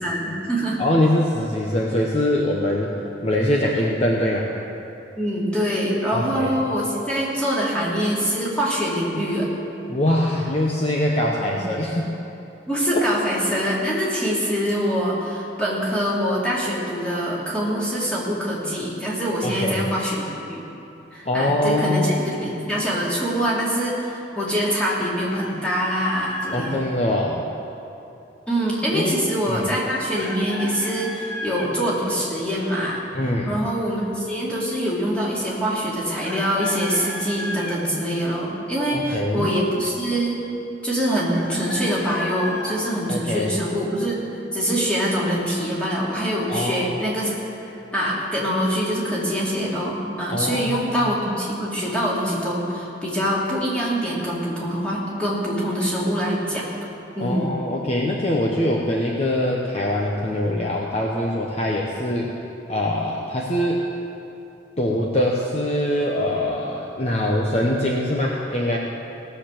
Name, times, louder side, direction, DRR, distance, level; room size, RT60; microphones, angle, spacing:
voice 1, 0.0-0.8 5.2-9.5 11.4-11.6 12.7-20.6 21.1-26.7 28.5-33.0 33.5-40.4 40.8-44.2 44.5-47.3 47.6-56.7 57.1-57.5, equal, 5° left, -6 dB, 2.7 m, -24 dB
voice 2, 0.8-2.9 3.2-4.5 6.1-6.6 9.9-12.1 12.9-13.1 19.4-19.9 21.2-22.2 26.5-27.5 28.9-29.2 29.5-29.6 33.1-33.6 38.9-39.5 43.1-43.6 46.5-46.9 50.3-50.9 57.2-62.3 62.7-63.8 64.8-68.8, left 1 dB, 35° left, -2 dB, 0.9 m, -23 dB
Chicken rooster, 25.3-26.8 30.1-31.7 36.2-37.8 41.3-42.8, left 1 dB, 70° left, 3.4 m, -33 dB
18.0 x 6.8 x 7.6 m, 2.9 s
head